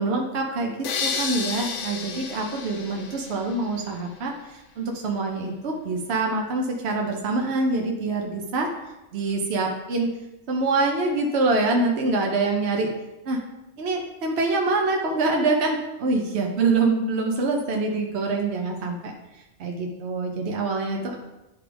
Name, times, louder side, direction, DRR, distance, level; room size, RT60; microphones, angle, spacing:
voice 1, 0.0-8.7 9.1-10.1 10.5-12.9 13.3-13.4 13.8-19.1 19.6-21.2, right 3 dB, 60° right, 1 dB, 1.0 m, -25 dB
sound 1, 0.8-3.9, left 5 dB, 70° left, 1.1 m, -31 dB
11.0 x 4.9 x 3.4 m, 0.99 s
omnidirectional pair, 1.3 m